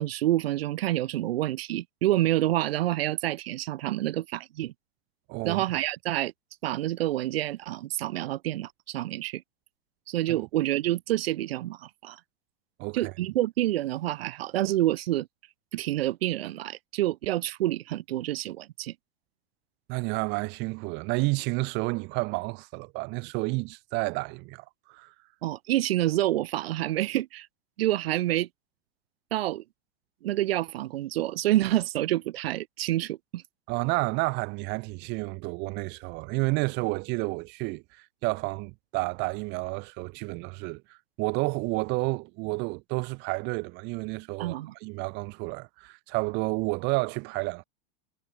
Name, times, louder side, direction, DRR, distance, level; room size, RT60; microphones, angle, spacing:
voice 1, 0.0-4.7 5.4-6.3 6.6-9.4 10.1-12.2 12.9-15.3 15.7-18.9 25.4-27.5 27.8-28.5 29.3-29.6 30.2-33.4 44.4-44.7, right 15 dB, 70° right, 6.5 m, -28 dB
voice 2, 5.3-5.6 10.3-10.5 12.8-13.1 19.9-25.1 33.7-44.6 44.8-47.6, right 27 dB, 35° right, 5.1 m, -30 dB
supercardioid pair, 180°, 31 cm